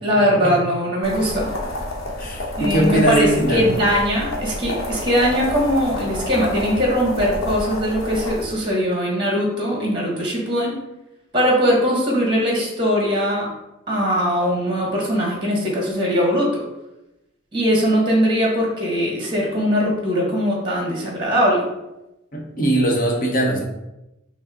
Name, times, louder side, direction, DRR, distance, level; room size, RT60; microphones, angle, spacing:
voice 1, 0.0-1.5 2.6-10.7 11.3-13.5 13.9-16.6 17.5-21.6, equal, 25° right, -2 dB, 1.1 m, -20 dB
sound 1, 1.0-8.4, left 1 dB, 85° left, 0.8 m, -29 dB
voice 2, 2.2-3.6 22.3-23.6, right 1 dB, 45° left, -1 dB, 0.9 m, -20 dB
6.0 x 2.0 x 3.6 m, 0.94 s
head